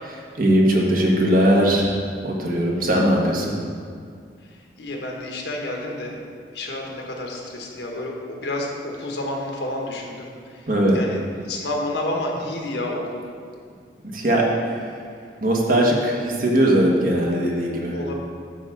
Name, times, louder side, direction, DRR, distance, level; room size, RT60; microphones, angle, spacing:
voice 1, 0.3-3.6 10.7-11.0 14.1-14.9 15.4-18.0, right 1 dB, 50° right, -2 dB, 1.3 m, -20 dB
voice 2, 4.8-6.2 6.5-10.6 10.9-11.2 11.5-13.3 17.9-18.1, left 1 dB, 75° left, 0 dB, 1.3 m, -30 dB
9.1 x 3.7 x 7.0 m, 2.1 s
head